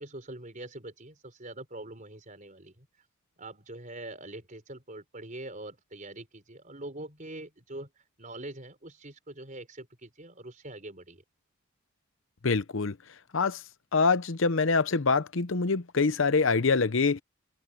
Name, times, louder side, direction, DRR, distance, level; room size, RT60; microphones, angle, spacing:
voice 1, 0.0-2.9 3.4-7.9 8.2-11.2, right 1 dB, 35° right, 5.0 m, -43 dB
voice 2, 12.4-12.9 13.3-13.6 13.9-17.2, left 4 dB, 65° left, 0.8 m, -25 dB
head